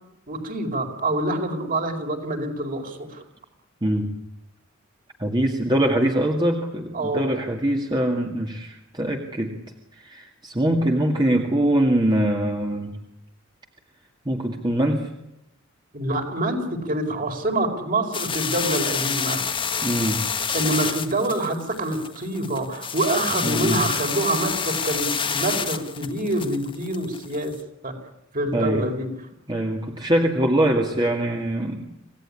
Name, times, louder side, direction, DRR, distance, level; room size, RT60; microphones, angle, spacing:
voice 1, 0.3-3.2 6.9-7.3 15.9-19.4 20.5-27.5 27.8-27.9 28.3-29.1, right 1 dB, 45° right, 4 dB, 4.6 m, -26 dB
voice 2, 3.8-4.1 5.2-9.5 10.0-12.9 14.3-15.1 19.8-20.2 23.4-23.8 28.5-28.9 29.5-31.8, right 1 dB, 20° right, 2 dB, 2.2 m, -23 dB
sound 1, 18.1-27.6, left 6 dB, 25° left, 1.6 m, -28 dB
27.0 x 17.5 x 9.9 m, 0.84 s
head